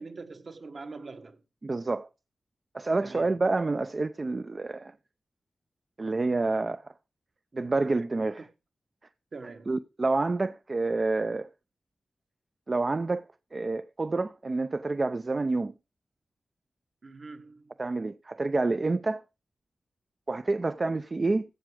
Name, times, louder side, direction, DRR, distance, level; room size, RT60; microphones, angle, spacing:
voice 1, 0.0-1.4 3.0-3.3 9.3-9.7 17.0-17.7, right 3 dB, 55° right, 1.5 m, -43 dB
voice 2, 1.6-2.1 2.7-4.9 6.0-6.9 7.5-8.5 9.7-11.5 12.7-15.7 17.8-19.2 20.3-21.4, right 3 dB, 40° right, 0.5 m, -28 dB
15.0 x 6.0 x 4.9 m
wide cardioid pair, 85°, 0 cm